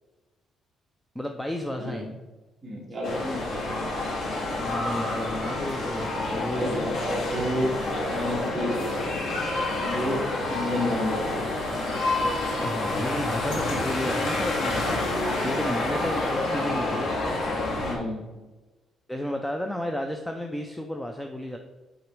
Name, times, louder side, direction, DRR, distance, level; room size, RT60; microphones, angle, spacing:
voice 1, 1.2-2.1 4.6-7.0 12.6-15.0 15.4-17.2 19.1-21.6, equal, 5° left, 4 dB, 0.4 m, -32 dB
voice 2, 1.8-2.1 2.6-3.6 6.5-7.7 8.1-9.1 9.8-11.4 17.8-18.4, equal, 20° right, -4 dB, 2.1 m, -30 dB
sound 1, 3.0-18.0, left 2 dB, 75° left, 2.2 m, -28 dB
8.3 x 3.9 x 4.7 m, 1.2 s
cardioid pair, 160°, 0 cm